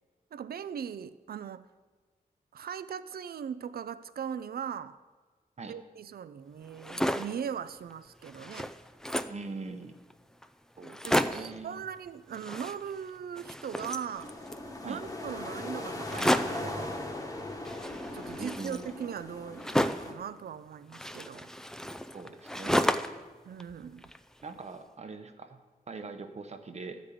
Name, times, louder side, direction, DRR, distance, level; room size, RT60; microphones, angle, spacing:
voice 1, 0.3-1.7 2.5-5.0 5.6-8.7 11.0-14.3 14.8-17.0 18.1-21.5 23.5-24.1, right 8 dB, 75° right, 15 dB, 0.4 m, -39 dB
sound 1, 6.7-7.4 7.9-8.0 8.2-9.5 10.1-10.2 10.4-10.5 10.8-11.6 12.3-13.1 13.4-14.7 16.0-16.7 17.7-20.2 20.9-23.3 23.6-24.5, equal, 5° left, 0.3 m, -32 dB
voice 2, 9.3-10.0 10.8-11.8 14.8-15.0 18.4-18.9 22.1-23.0 24.4-25.6 25.9-27.0, right 3 dB, 45° right, 8 dB, 0.8 m, -42 dB
sound 2, 14.1-20.1, left 2 dB, 20° left, 1.2 m, -39 dB
12.5 x 5.2 x 8.5 m, 1.4 s
wide cardioid pair, 175°, 16 cm